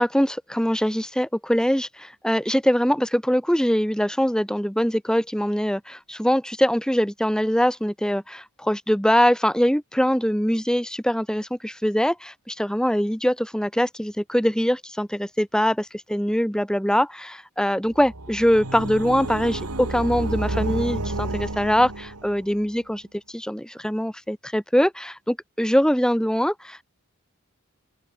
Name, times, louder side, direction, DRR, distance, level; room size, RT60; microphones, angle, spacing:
voice 1, 0.0-23.0 23.3-26.8, equal, 5° left, 7.2 m, -23 dB
sound 1, 17.9-22.6, right 2 dB, 90° right, 2.7 m, -30 dB
open air
head